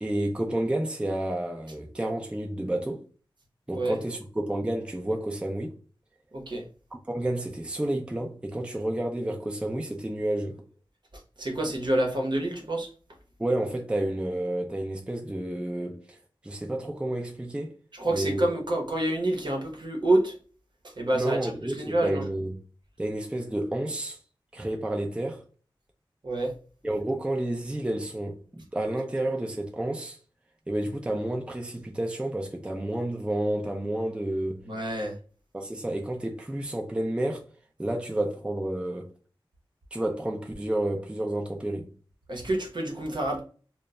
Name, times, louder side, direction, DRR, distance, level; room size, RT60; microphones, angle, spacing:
voice 1, 0.0-3.0 3.7-5.8 7.1-10.6 13.4-16.2 16.4-17.8 18.1-18.5 21.1-22.6 23.0-24.2 24.5-25.4 26.8-30.2 30.7-34.6 35.5-37.4 37.8-39.1 39.9-41.9, right 1 dB, 10° right, 0.4 m, -30 dB
voice 2, 6.3-6.6 11.4-12.9 17.9-20.4 20.8-22.2 26.2-26.5 34.6-35.2 42.3-43.4, right 1 dB, 55° right, 0.7 m, -27 dB
2.1 x 2.1 x 3.5 m
wide cardioid pair, 60°, 9 cm